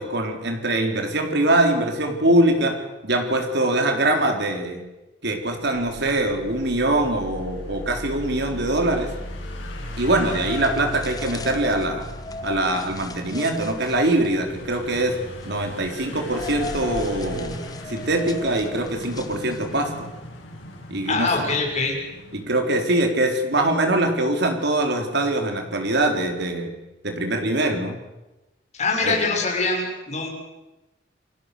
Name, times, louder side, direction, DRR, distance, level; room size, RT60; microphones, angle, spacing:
voice 1, 0.0-2.8 3.0-4.8 5.2-9.1 10.0-12.1 12.4-15.2 15.5-17.6 17.9-20.1 20.9-21.6 22.3-26.7 27.0-28.0 29.0-29.2, right 1 dB, 60° right, 5 dB, 4.0 m, -23 dB
sound 1, 5.7-13.3, left 1 dB, 30° right, 5.5 m, -38 dB
sound 2, 5.9-22.4, left 1 dB, 85° left, 7.2 m, -40 dB
sound 3, 10.0-19.9, left 2 dB, 20° left, 1.4 m, -37 dB
voice 2, 21.1-22.0 28.8-30.3, left 3 dB, 35° left, 0 dB, 6.8 m, -23 dB
29.0 x 20.5 x 6.9 m, 1.0 s
head